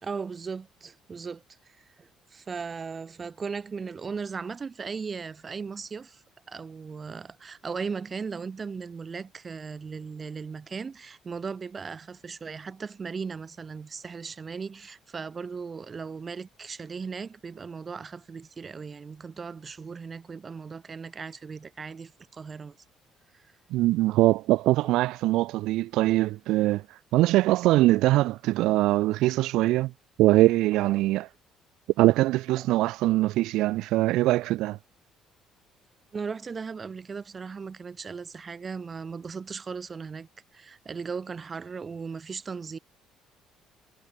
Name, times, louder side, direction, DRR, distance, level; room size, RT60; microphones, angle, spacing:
voice 1, 0.0-22.8 23.3-23.5 24.8-24.9 30.8-31.0 32.6-32.7 36.1-42.8, right 5 dB, 35° right, 2.6 m, -37 dB
voice 2, 23.7-29.9 30.2-31.3 32.0-34.8, right 17 dB, 60° right, 1.1 m, -22 dB
figure-of-eight pair, 50°, 0 cm